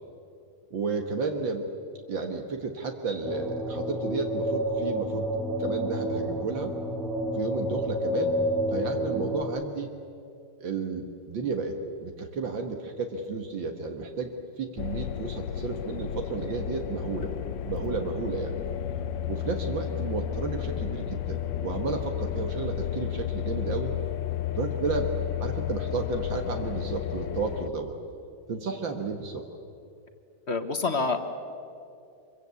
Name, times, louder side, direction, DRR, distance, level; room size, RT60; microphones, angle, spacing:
voice 1, 0.7-1.7 2.1-5.3 5.6-6.7 7.3-8.4 8.7-9.9 10.6-11.8 12.0-17.3 17.7-18.5 19.3-23.9 24.5-25.1 25.4-27.9 28.5-29.4, right 4 dB, 75° right, 4 dB, 2.2 m, -32 dB
sound 1, 3.2-9.4, equal, ahead, 0.7 m, -29 dB
sound 2, 14.8-27.7, left 11 dB, 75° left, 1.4 m, -32 dB
voice 2, 30.5-31.2, left 3 dB, 40° left, 7 dB, 1.4 m, -27 dB
25.0 x 23.5 x 8.3 m, 2.5 s
omnidirectional pair, 2.1 m